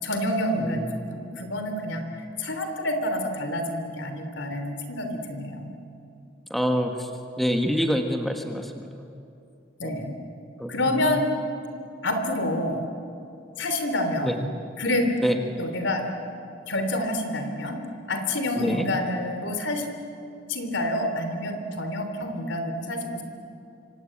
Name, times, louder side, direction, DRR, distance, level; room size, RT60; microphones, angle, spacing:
voice 1, 0.0-5.7 9.8-10.1 10.7-11.3 12.0-12.9 13.6-14.4 14.8-15.1 15.6-16.1 16.7-17.8 18.1-19.8 20.5-23.2, left 1 dB, 80° left, 6 dB, 3.2 m, -28 dB
voice 2, 6.5-7.1 7.4-9.1 9.8-10.0 10.6-11.1 14.2-14.3 15.2-15.4 18.6-18.9, equal, ahead, 4 dB, 1.5 m, -26 dB
26.0 x 25.5 x 8.8 m, 2.6 s
head